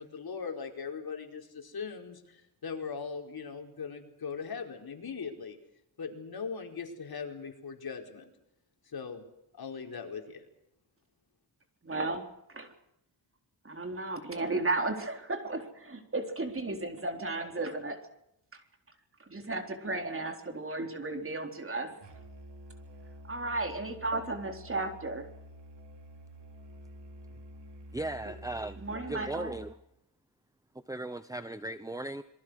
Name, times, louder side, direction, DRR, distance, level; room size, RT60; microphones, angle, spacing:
voice 1, 0.0-5.6 6.0-8.3 8.8-9.2 9.5-10.4, left 5 dB, 60° left, 3 dB, 4.8 m, -40 dB
voice 2, 11.8-12.7 13.6-18.0 19.3-22.0 23.2-25.3 28.8-29.5, right 2 dB, 30° right, 5 dB, 4.0 m, -34 dB
Musical instrument, 22.0-29.8, right 1 dB, 90° right, 3.8 m, -49 dB
voice 3, 27.9-28.8 29.1-29.8 30.9-32.2, right 2 dB, 10° right, 12 dB, 0.9 m, -37 dB
27.5 x 22.5 x 6.5 m, 0.81 s
wide cardioid pair, 105°, 41 cm